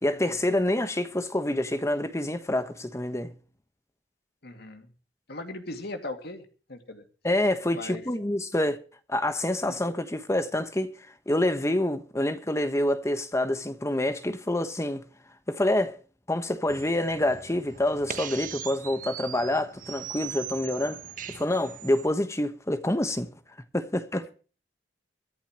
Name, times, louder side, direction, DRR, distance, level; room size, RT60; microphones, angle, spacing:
voice 1, 0.0-3.3 7.2-8.8 9.1-11.0 11.3-15.1 15.5-16.0 16.3-21.0 21.3-23.3 23.7-24.3, left 1 dB, 15° left, 1.2 m, -27 dB
voice 2, 4.4-4.9 5.3-7.0 7.7-8.0 9.7-9.8, left 2 dB, 60° left, 2.4 m, -39 dB
sound 1, 16.7-22.1, right 8 dB, 50° right, 1.3 m, -40 dB
24.0 x 11.5 x 3.1 m
head